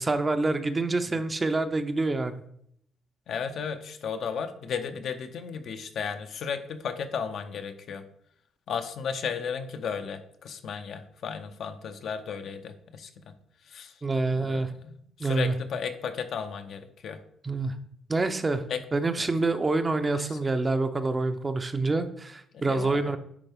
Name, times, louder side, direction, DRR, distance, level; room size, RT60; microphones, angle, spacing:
voice 1, 0.0-2.4 14.0-14.7 15.2-15.5 17.4-17.7 18.1-18.6 18.9-23.2, right 3 dB, 25° right, 9 dB, 0.6 m, -26 dB
voice 2, 3.3-8.0 8.7-13.2 13.7-13.9 14.3-17.2 18.7-18.8 19.2-19.3 20.1-20.4 22.5-23.2, left 6 dB, 65° left, 7 dB, 0.6 m, -34 dB
9.9 x 3.5 x 3.5 m, 0.70 s
cardioid pair, 90°, 0 cm